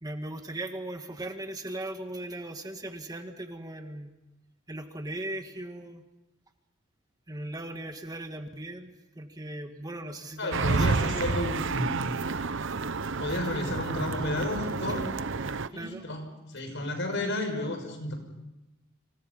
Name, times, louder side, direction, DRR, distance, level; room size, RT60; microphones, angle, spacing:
voice 1, 0.0-4.1 4.7-6.0 7.3-11.3 14.9-15.0 15.7-16.0, right 1 dB, 20° right, 5 dB, 1.7 m, -38 dB
voice 2, 10.4-11.9 13.2-15.0 15.7-18.2, left 1 dB, 65° left, 5 dB, 6.2 m, -32 dB
sound 1, 10.5-15.7, right 4 dB, 65° right, 0.9 m, -30 dB
30.0 x 27.5 x 5.5 m, 0.98 s
head